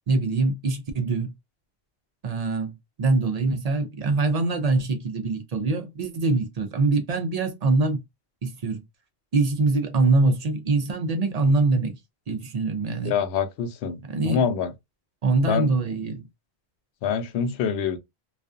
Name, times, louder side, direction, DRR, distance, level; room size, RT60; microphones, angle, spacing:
voice 1, 0.1-1.3 2.2-8.0 8.4-8.8 9.3-12.0 12.3-13.2 14.1-14.4 15.2-16.2, right 3 dB, 55° right, 0.4 m, -24 dB
voice 2, 13.0-14.0 14.2-14.7 15.5-15.7 17.0-18.0, left 7 dB, 75° left, 0.8 m, -25 dB
2.4 x 2.3 x 2.3 m
omnidirectional pair, 1.1 m